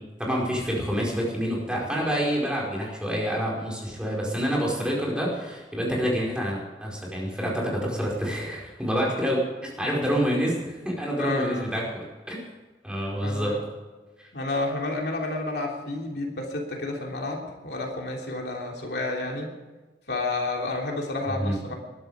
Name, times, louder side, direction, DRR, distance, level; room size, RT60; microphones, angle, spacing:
voice 1, 0.2-12.4 12.8-13.6 14.2-14.3 21.3-21.6, equal, 5° right, -3 dB, 4.8 m, -27 dB
voice 2, 11.2-11.7 13.2-13.6 14.3-19.5 20.1-21.7, left 2 dB, 65° left, 0 dB, 3.3 m, -30 dB
21.0 x 12.0 x 5.0 m, 1.2 s
head